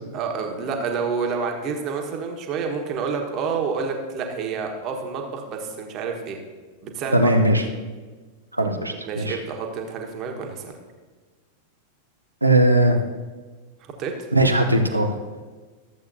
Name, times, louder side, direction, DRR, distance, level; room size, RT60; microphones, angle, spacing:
voice 1, 0.1-6.4 6.8-7.3 9.0-10.7 13.8-14.1, right 5 dB, 35° right, 3 dB, 1.5 m, -28 dB
voice 2, 7.1-7.6 8.6-9.4 12.4-13.0 14.3-15.1, right 1 dB, 85° right, 3 dB, 0.8 m, -18 dB
14.0 x 7.8 x 2.8 m, 1.4 s
figure-of-eight pair, 90°, 0 cm